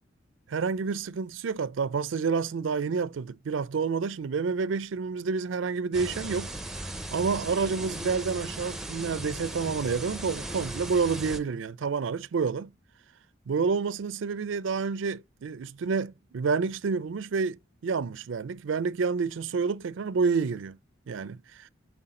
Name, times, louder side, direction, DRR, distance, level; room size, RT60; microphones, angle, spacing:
voice 1, 0.5-6.5 7.1-12.7 13.5-20.8 21.1-21.7, right 5 dB, 70° right, 0.4 m, -29 dB
sound 1, 5.9-11.4, right 1 dB, ahead, 0.6 m, -37 dB
5.7 x 4.6 x 3.7 m
head